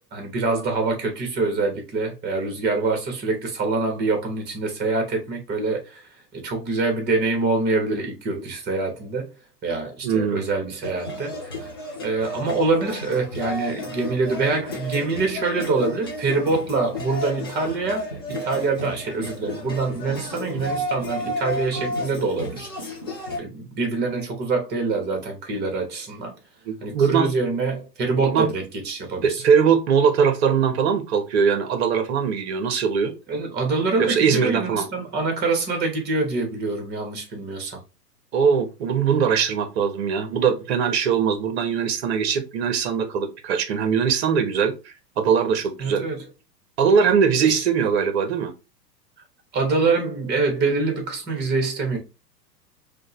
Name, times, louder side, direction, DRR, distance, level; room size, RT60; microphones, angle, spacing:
voice 1, 0.0-6.0 6.3-9.3 9.6-11.7 12.0-23.0 23.4-26.3 26.8-29.4 33.3-37.8 45.8-46.2 47.4-47.6 49.5-52.0, right 3 dB, 20° right, 1.1 m, -25 dB
voice 2, 10.0-10.4 26.7-27.3 28.2-28.5 29.2-33.1 34.0-34.9 38.3-46.0 46.8-48.5, right 6 dB, 40° right, 0.8 m, -21 dB
sound 1, 10.8-23.4, left 1 dB, 15° left, 0.3 m, -32 dB
5.0 x 2.2 x 2.9 m
figure-of-eight pair, 105°, 50 cm